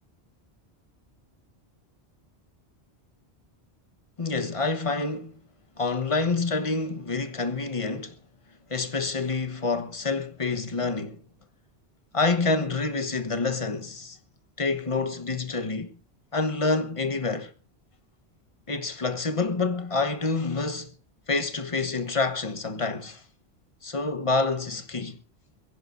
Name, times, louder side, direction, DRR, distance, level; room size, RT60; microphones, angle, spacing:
voice 1, 4.2-5.3 5.8-8.1 8.7-11.2 12.1-14.2 14.6-15.9 16.3-17.5 18.7-20.9 21.3-23.2 23.8-25.2, left 3 dB, 30° left, 1.1 m, -27 dB
23.0 x 16.0 x 2.6 m
omnidirectional pair, 1.1 m